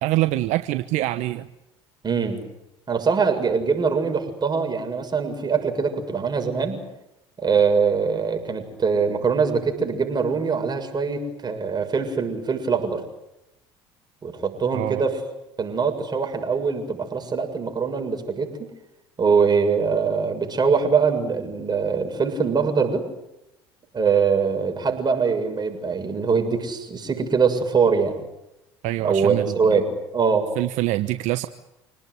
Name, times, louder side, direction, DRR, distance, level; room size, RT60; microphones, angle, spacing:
voice 1, 0.0-1.5 14.7-15.0 28.8-29.5 30.6-31.5, right 16 dB, 65° right, 10 dB, 1.1 m, -24 dB
voice 2, 2.0-2.4 2.9-6.8 7.4-13.0 14.2-15.2 15.6-18.7 19.2-23.1 23.9-28.2 29.0-30.5, right 5 dB, 35° right, 4 dB, 7.1 m, -23 dB
28.0 x 19.0 x 9.8 m, 0.89 s
hypercardioid pair, 70°, 13 cm